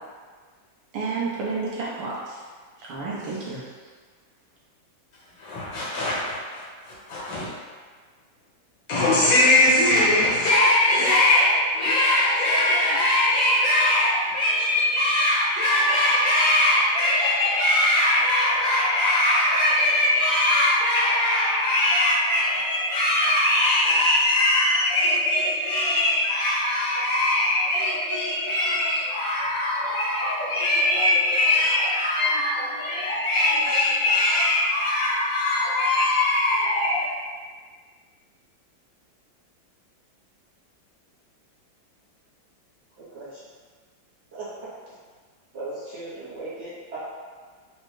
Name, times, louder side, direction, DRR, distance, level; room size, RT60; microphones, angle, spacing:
voice 1, 0.9-2.4 2.8-3.7, right 4 dB, 85° right, -6 dB, 1.7 m, -30 dB
voice 2, 5.4-7.5 8.9-37.1, left 1 dB, 80° left, -7 dB, 2.0 m, -21 dB
voice 3, 43.0-43.4 44.3-44.9 45.5-47.0, right 2 dB, 55° right, -11 dB, 0.8 m, -37 dB
4.7 x 2.1 x 3.1 m, 1.5 s
omnidirectional pair, 2.1 m